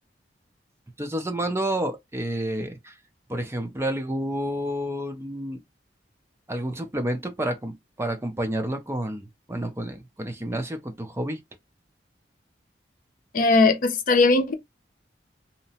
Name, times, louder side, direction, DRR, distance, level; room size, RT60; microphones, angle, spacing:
voice 1, 1.0-3.0 3.3-5.6 6.5-11.4, right 1 dB, 15° right, 0.5 m, -30 dB
voice 2, 13.3-14.5, left 3 dB, 50° left, 0.5 m, -19 dB
2.8 x 2.0 x 2.7 m
head